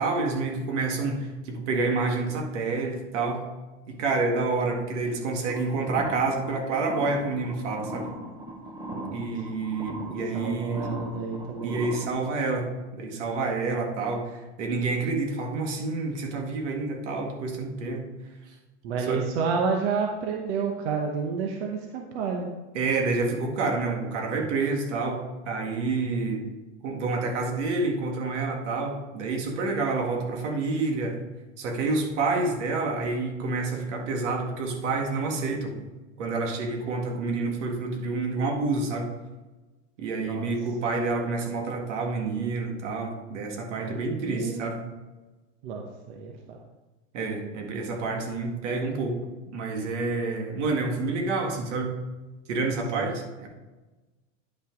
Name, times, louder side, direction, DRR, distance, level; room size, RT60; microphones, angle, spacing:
voice 1, 0.0-3.5 3.9-8.1 9.1-10.9 11.6-18.0 19.1-19.2 22.7-26.4 26.8-31.2 31.6-35.7 36.2-39.1 40.0-44.9 47.1-49.2 49.5-52.0 52.5-53.5, right 3 dB, 90° right, 2 dB, 1.9 m, -28 dB
sound 1, 5.5-12.1, equal, 10° right, 0.7 m, -38 dB
voice 2, 8.9-9.5 10.1-11.8 18.8-22.5 40.3-40.5 43.8-44.8 45.6-46.6 52.9-53.1, right 5 dB, 60° right, 2 dB, 1.0 m, -30 dB
9.9 x 5.8 x 3.8 m, 1.1 s
supercardioid pair, 175°, 35 cm